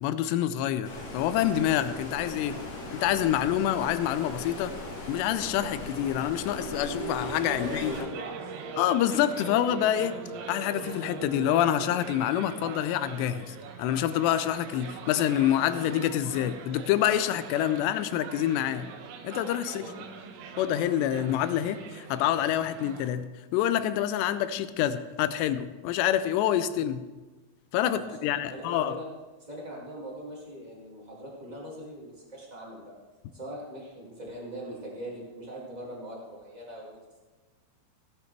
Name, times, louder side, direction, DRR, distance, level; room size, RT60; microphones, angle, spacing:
voice 1, 0.0-2.6 2.9-4.7 5.1-7.9 8.8-10.2 10.5-18.9 19.2-19.9 20.6-27.0 27.7-29.0, left 11 dB, 80° left, 12 dB, 2.6 m, -27 dB
Stream, 0.8-8.0, left 2 dB, 55° left, 1.7 m, -39 dB
sound 1, 6.6-11.9, right 4 dB, 60° right, 3.1 m, -39 dB
sound 2, 7.1-23.1, right 6 dB, 75° right, 2.9 m, -44 dB
voice 2, 7.5-8.6 19.6-20.1 27.9-29.0 29.4-32.9 33.3-37.2, equal, 25° right, -5 dB, 0.8 m, -41 dB
16.0 x 9.2 x 3.3 m, 1.2 s
omnidirectional pair, 5.1 m